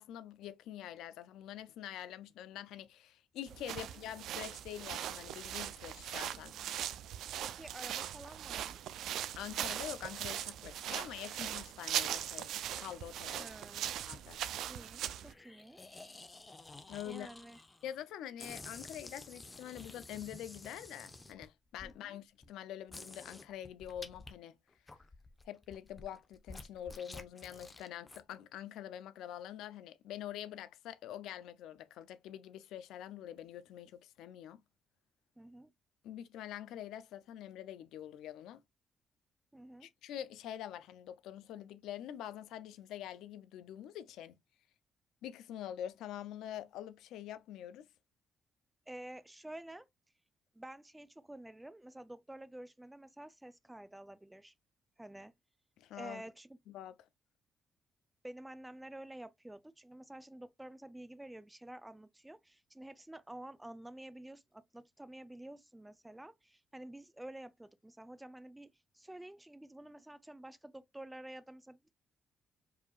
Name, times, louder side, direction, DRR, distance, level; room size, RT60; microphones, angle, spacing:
voice 1, 0.0-6.5 9.4-13.5 14.1-14.4 16.9-17.3 17.8-24.6 25.5-34.6 36.0-38.6 39.8-44.4 45.2-47.9 55.8-56.2 56.7-57.1, left 11 dB, 90° left, 0.4 m, -45 dB
sound 1, 3.5-15.3, right 11 dB, 80° right, 0.4 m, -40 dB
voice 2, 6.3-6.7 7.4-8.8 13.4-13.9 14.7-15.8 17.0-17.6 21.8-22.2 35.4-35.7 39.5-39.9 48.9-49.9 50.5-54.5 55.0-55.3 55.9-56.6 58.2-68.7 68.9-71.9, right 1 dB, 10° right, 0.4 m, -50 dB
sound 2, 14.0-14.5 15.2-17.9 18.4-21.9 22.4-22.5 22.9-24.3 24.7-28.2, left 2 dB, 25° left, 0.8 m, -51 dB
4.9 x 2.7 x 2.3 m
cardioid pair, 90°, 0 cm